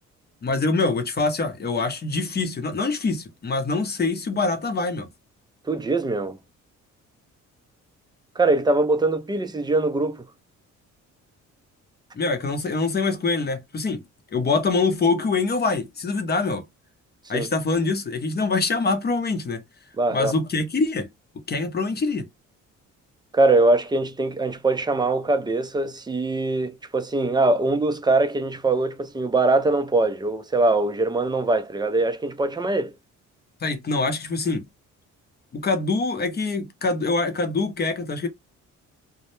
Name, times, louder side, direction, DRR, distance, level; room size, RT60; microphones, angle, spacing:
voice 1, 0.4-5.1 12.1-14.0 14.3-16.6 17.3-19.6 20.1-21.1 21.5-22.2 33.6-34.7 35.5-38.3, left 3 dB, 35° left, 0.6 m, -24 dB
voice 2, 5.6-6.4 8.4-10.3 17.3-17.5 20.0-20.3 23.3-32.9, right 2 dB, 15° right, 0.4 m, -22 dB
2.1 x 2.0 x 3.0 m
cardioid pair, 90°, 30 cm